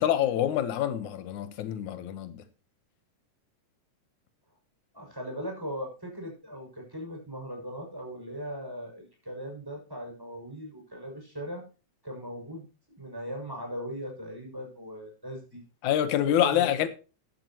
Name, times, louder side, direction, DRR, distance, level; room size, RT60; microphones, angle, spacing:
voice 1, 0.0-2.4 15.8-16.9, left 11 dB, 90° left, 2.6 m, -26 dB
voice 2, 4.9-11.6 12.0-12.7 13.0-15.6 16.2-16.8, equal, 5° right, 6.6 m, -39 dB
13.5 x 12.0 x 3.0 m
omnidirectional pair, 3.3 m